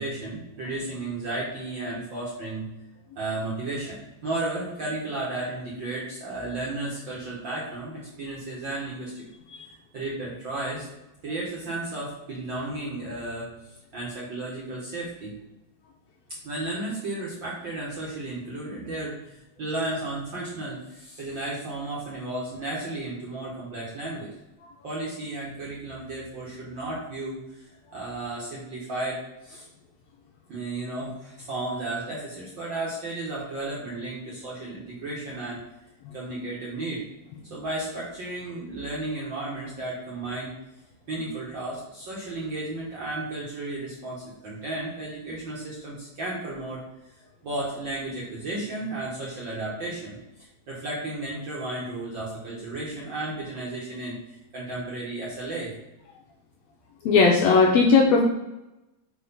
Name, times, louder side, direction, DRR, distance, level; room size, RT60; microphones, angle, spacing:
voice 1, 0.0-2.7 3.2-9.1 9.9-10.9 11.2-15.3 16.4-24.3 24.8-27.6 27.9-29.7 30.5-35.6 36.1-37.0 37.5-40.6 41.1-46.8 47.4-55.7, right 2 dB, 55° right, -5 dB, 1.3 m, -33 dB
voice 2, 57.0-58.2, left 4 dB, 80° left, 0 dB, 1.6 m, -17 dB
4.7 x 4.7 x 5.4 m, 0.96 s
omnidirectional pair, 3.7 m